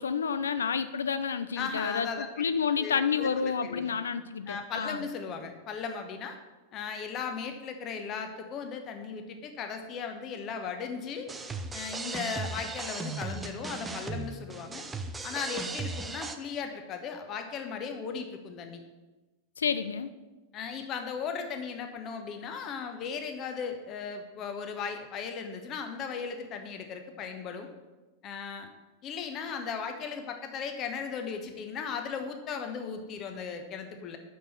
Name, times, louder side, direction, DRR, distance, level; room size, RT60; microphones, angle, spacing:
voice 1, 0.0-5.0 19.6-20.1, left 6 dB, 70° left, 12 dB, 0.5 m, -30 dB
voice 2, 1.6-2.3 2.8-3.9 4.5-6.4 6.7-11.3 11.7-14.8 15.2-18.8 20.5-27.7 28.2-28.7 29.0-34.2, left 6 dB, 35° left, 5 dB, 1.1 m, -37 dB
sound 1, 11.3-16.3, right 3 dB, 15° right, 0.6 m, -37 dB
6.2 x 5.3 x 6.6 m, 1.2 s
figure-of-eight pair, 90°, 0 cm